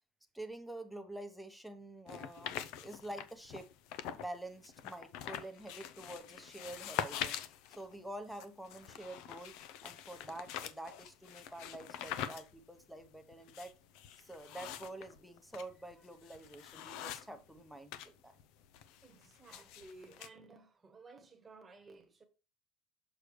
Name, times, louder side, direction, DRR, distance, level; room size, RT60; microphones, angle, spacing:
voice 1, 0.3-3.7 4.1-7.4 7.7-9.5 9.8-13.7 14.2-18.3, right 1 dB, ahead, 0.8 m, -47 dB
sound 1, 2.1-4.3 4.6-18.1 18.4-20.3, left 10 dB, 70° left, 0.6 m, -44 dB
voice 2, 19.0-22.2, right 3 dB, 15° right, 1.2 m, -56 dB
6.6 x 6.4 x 3.1 m
cardioid pair, 155°, 0 cm